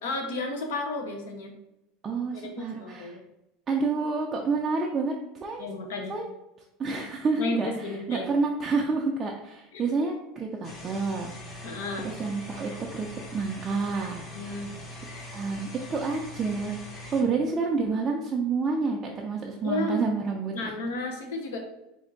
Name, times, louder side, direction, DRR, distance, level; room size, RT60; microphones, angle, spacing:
voice 1, 0.0-1.5 2.3-3.2 5.6-6.2 7.4-8.3 9.7-9.8 11.6-12.1 14.3-14.8 19.6-20.0 20.5-21.6, left 2 dB, 90° left, 3 dB, 0.8 m, -32 dB
voice 2, 2.0-3.2 3.7-5.7 6.1-6.3 6.8-11.8 12.0-13.1 13.3-14.3 14.6-14.7 15.3-16.8 17.1-20.7, right 4 dB, 20° right, -1 dB, 0.4 m, -29 dB
sound 1, 10.6-17.2, left 1 dB, 30° left, 0.9 m, -42 dB
4.3 x 2.6 x 3.8 m, 0.94 s
supercardioid pair, 155°, 0 cm